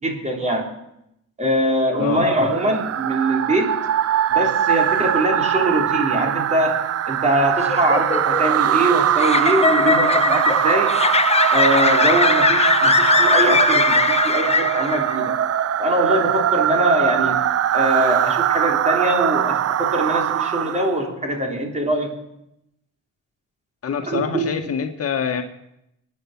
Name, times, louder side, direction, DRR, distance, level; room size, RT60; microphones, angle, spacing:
voice 1, 0.0-0.7 1.4-3.8 4.3-6.8 7.1-11.0 11.5-15.4 15.8-17.4 17.7-22.2 24.1-24.5, right 1 dB, 25° right, 1 dB, 3.7 m, -22 dB
sound 1, 2.0-21.0, right 10 dB, 55° right, 0.6 m, -21 dB
sound 2, 7.5-15.2, left 4 dB, 20° left, 0.7 m, -20 dB
voice 2, 23.8-25.4, left 7 dB, 50° left, 4 dB, 1.6 m, -25 dB
23.5 x 9.7 x 6.0 m, 0.83 s
cardioid pair, 90°, 30 cm